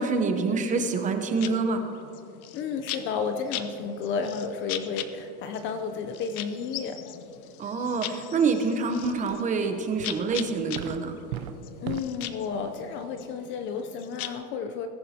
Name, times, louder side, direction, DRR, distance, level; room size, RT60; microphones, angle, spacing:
voice 1, 0.0-1.8 7.6-11.2, right 4 dB, 20° right, 6 dB, 0.8 m, -26 dB
sound 1, 1.3-14.3, left 12 dB, 80° left, 0.9 m, -40 dB
voice 2, 2.5-7.0 11.8-14.9, left 5 dB, 30° left, 7 dB, 0.5 m, -32 dB
sound 2, 8.6-8.7 9.0-9.6 10.0-12.0, right 11 dB, 80° right, 0.7 m, -38 dB
21.0 x 11.5 x 2.8 m, 2.7 s
supercardioid pair, 140°, 43 cm